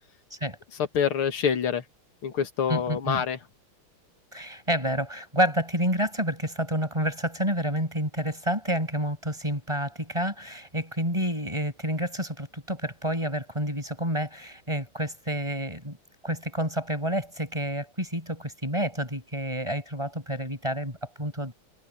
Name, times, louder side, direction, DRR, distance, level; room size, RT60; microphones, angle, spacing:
voice 1, 0.9-1.8 2.2-3.4, left 7 dB, 75° left, 2.6 m, -26 dB
voice 2, 2.7-3.2 4.3-16.0 16.2-21.5, equal, 10° right, 7.1 m, -29 dB
omnidirectional pair, 2.4 m